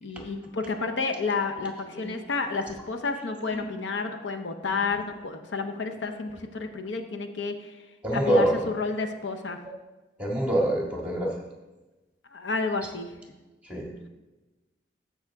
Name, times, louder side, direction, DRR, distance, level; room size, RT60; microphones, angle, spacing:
voice 1, 0.0-7.5 8.1-8.4 8.8-9.6 12.3-13.1, left 4 dB, 75° left, 6 dB, 0.7 m, -30 dB
voice 2, 8.0-8.6 10.2-11.3 13.6-14.1, right 1 dB, 5° right, -2 dB, 1.8 m, -26 dB
15.0 x 5.6 x 3.5 m, 1.1 s
head